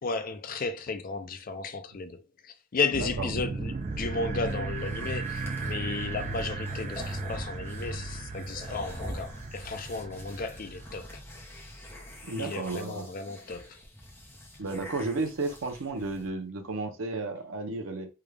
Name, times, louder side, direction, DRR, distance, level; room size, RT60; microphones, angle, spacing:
voice 1, 0.0-11.2 12.4-13.8, left 4 dB, 45° left, 0.4 m, -34 dB
sound 1, 2.9-11.0, right 3 dB, 35° right, 0.4 m, -36 dB
voice 2, 2.9-3.3 12.2-13.1 14.6-18.1, right 3 dB, 85° right, 0.8 m, -33 dB
sound 2, 3.9-16.3, equal, 10° left, 0.8 m, -44 dB
3.4 x 2.3 x 3.3 m
head